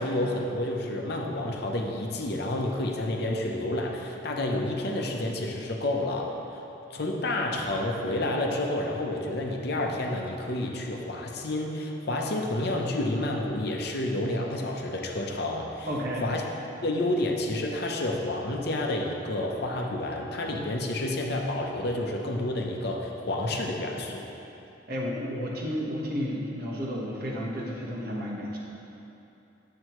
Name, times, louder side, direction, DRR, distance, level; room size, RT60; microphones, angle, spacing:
voice 1, 0.0-6.6 6.9-15.9 16.2-16.4 16.8-24.3, left 1 dB, 60° left, 1 dB, 0.8 m, -29 dB
voice 2, 15.9-16.3 24.9-28.6, equal, 55° right, -4 dB, 1.3 m, -32 dB
9.6 x 7.6 x 3.1 m, 2.9 s
head